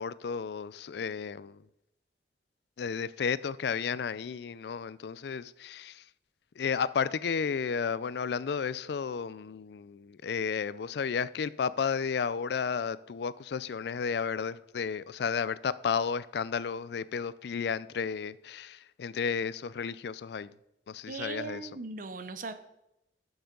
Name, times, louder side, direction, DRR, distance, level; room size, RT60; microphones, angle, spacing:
voice 1, 0.0-1.6 2.8-6.0 6.6-20.5 20.9-21.6, left 6 dB, 65° left, 0.4 m, -32 dB
voice 2, 21.1-22.5, right 4 dB, 45° right, 0.7 m, -38 dB
11.5 x 7.0 x 3.8 m
head